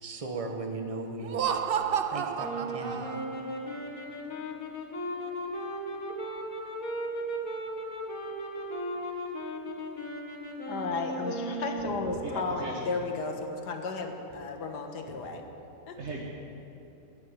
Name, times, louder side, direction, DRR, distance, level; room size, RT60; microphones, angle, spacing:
voice 1, 0.0-1.6 2.1-3.1, right 3 dB, 25° right, 4 dB, 1.2 m, -37 dB
Laughter, 1.2-3.5, right 8 dB, 80° right, 0.5 m, -31 dB
sound 1, 2.4-12.4, right 1 dB, 60° left, 2.2 m, -36 dB
voice 2, 10.7-15.4 15.9-16.0, left 3 dB, 80° left, 4 dB, 2.0 m, -34 dB
voice 3, 12.2-12.9 16.0-16.3, right 2 dB, 45° right, -1 dB, 1.5 m, -37 dB
15.0 x 10.5 x 8.9 m, 2.9 s
omnidirectional pair, 1.8 m